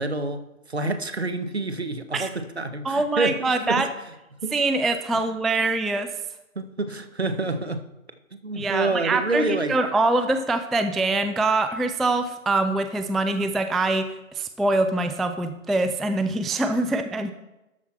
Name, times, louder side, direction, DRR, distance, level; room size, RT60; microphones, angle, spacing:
voice 1, 0.0-3.9 4.4-4.5 6.6-7.8 8.3-9.8, right 2 dB, 50° right, 10 dB, 0.8 m, -28 dB
voice 2, 2.8-3.9 4.5-6.1 8.6-17.3, right 2 dB, ahead, 8 dB, 0.3 m, -24 dB
12.5 x 5.8 x 4.3 m, 0.97 s
figure-of-eight pair, 175°, 42 cm